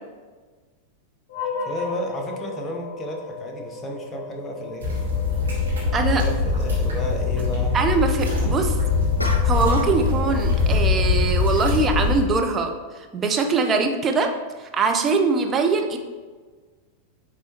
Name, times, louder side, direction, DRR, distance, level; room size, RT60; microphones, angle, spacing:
sound 1, 1.3-11.8, left 4 dB, 35° left, 1.6 m, -37 dB
voice 1, 1.6-4.9 6.0-7.8, left 1 dB, 20° left, 1 dB, 1.0 m, -32 dB
sound 2, 4.8-12.2, left 4 dB, 70° right, 1.7 m, -22 dB
voice 2, 7.7-8.8 9.2-14.3 14.7-16.0, right 4 dB, 25° right, 4 dB, 0.6 m, -22 dB
sound 3, 9.2-10.1 10.3-10.7, equal, 85° left, 0.5 m, -32 dB
8.9 x 3.5 x 3.0 m, 1.4 s
figure-of-eight pair, 90°, 0 cm